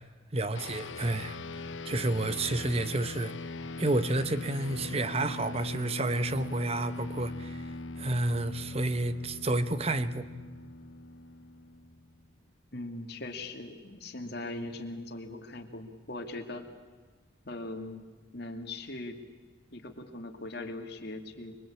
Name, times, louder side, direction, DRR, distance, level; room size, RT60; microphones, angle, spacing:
voice 1, 0.3-1.4 1.9-3.3 3.8-7.6 8.0-10.3, right 2 dB, 30° right, 1.0 m, -30 dB
sound 1, 0.5-12.2, left 2 dB, 70° left, 0.9 m, -41 dB
voice 2, 12.7-16.6 17.5-18.1 18.3-19.2 19.7-21.5, left 2 dB, 55° left, 2.5 m, -40 dB
26.0 x 24.0 x 8.7 m
head